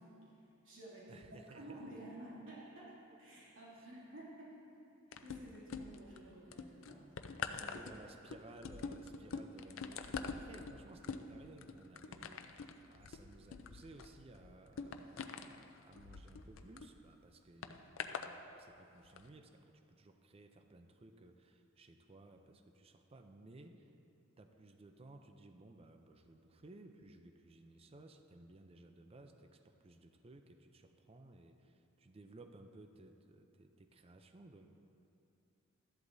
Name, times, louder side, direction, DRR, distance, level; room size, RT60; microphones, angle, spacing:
voice 1, 0.0-1.2 1.5-4.5 5.2-8.0, right 1 dB, 85° right, -8 dB, 2.6 m, -53 dB
voice 2, 1.1-1.8 3.8-3.9 7.6-23.9 24.4-34.7, right 2 dB, 30° right, 6 dB, 0.5 m, -58 dB
sound 1, 5.1-6.2 6.5-16.9 17.6-18.3 19.0-19.2, left 5 dB, 85° left, 0.5 m, -45 dB
13.5 x 11.0 x 2.7 m, 2.7 s
head